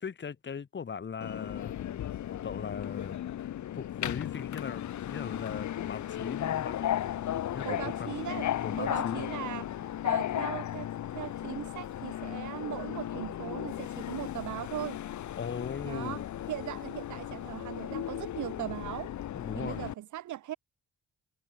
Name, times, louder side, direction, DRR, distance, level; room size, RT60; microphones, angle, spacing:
voice 1, 0.0-3.2 3.7-7.1 7.5-8.2 8.6-9.2 15.4-16.3 19.3-19.9, left 6 dB, 40° left, 2.2 m, -39 dB
Subway metro underground, 1.2-19.9, left 11 dB, 70° left, 3.1 m, -35 dB
voice 2, 7.6-8.5 8.8-15.0 15.8-19.1 19.6-20.6, right 13 dB, 75° right, 2.4 m, -39 dB
cardioid pair, 90°, 30 cm